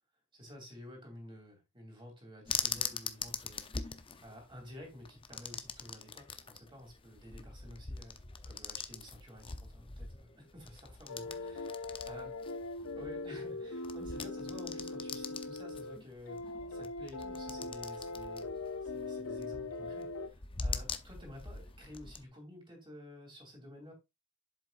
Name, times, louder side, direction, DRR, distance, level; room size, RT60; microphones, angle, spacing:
voice 1, 0.3-12.3 12.9-18.5 18.8-23.9, left 1 dB, 25° right, 2.9 m, -52 dB
sound 1, 2.5-22.3, left 5 dB, 25° left, 0.7 m, -43 dB
sound 2, 11.1-16.0 16.3-20.3, left 3 dB, 90° left, 0.9 m, -41 dB
8.0 x 7.2 x 2.5 m
head